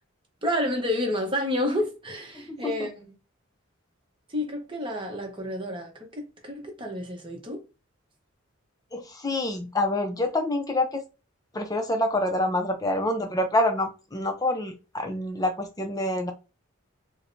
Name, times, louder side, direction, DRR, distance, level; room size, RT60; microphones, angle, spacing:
voice 1, 0.4-3.0 4.3-7.6, left 1 dB, 25° right, 0.9 m, -30 dB
voice 2, 2.4-2.7 8.9-11.0 11.5-16.3, left 1 dB, 15° left, 0.5 m, -27 dB
4.6 x 2.2 x 2.6 m
head